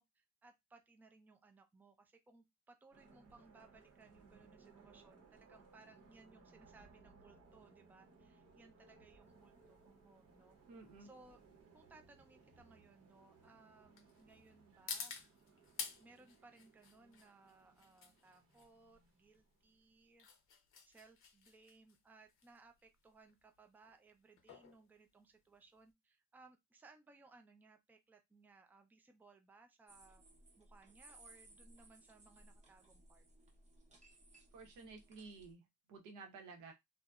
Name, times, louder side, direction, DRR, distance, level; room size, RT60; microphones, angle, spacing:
voice 1, 0.0-10.6 11.0-11.4 11.7-15.1 16.0-20.3 20.9-30.2 30.6-33.3, right 3 dB, 5° right, 0.3 m, -64 dB
sound 1, 2.9-19.8, right 4 dB, 55° right, 0.8 m, -65 dB
sound 2, 9.3-25.9, left 6 dB, 45° left, 0.6 m, -52 dB
voice 2, 10.7-11.1 34.5-36.7, right 4 dB, 85° right, 0.9 m, -54 dB
sound 3, 29.9-35.5, right 2 dB, 25° right, 0.8 m, -63 dB
2.7 x 2.1 x 2.3 m
cardioid pair, 120°, 30 cm